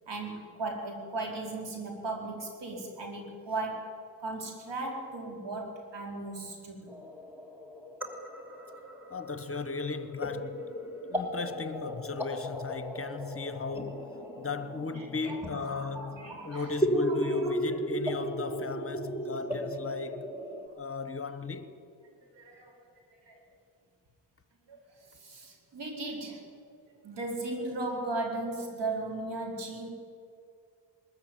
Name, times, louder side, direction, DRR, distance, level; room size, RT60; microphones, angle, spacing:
voice 1, 0.1-7.0 14.9-17.6 20.7-20.8 22.2-22.9 23.2-23.4 24.7-26.5 27.0-29.9, right 2 dB, 65° right, 4.3 m, -37 dB
sound 1, 6.9-20.7, equal, 5° right, 3.1 m, -35 dB
voice 2, 9.1-10.6 11.1-14.1 14.4-20.3 20.8-21.7, left 4 dB, 30° left, 1.2 m, -36 dB
21.5 x 13.5 x 9.1 m
cardioid pair, 70°, 45 cm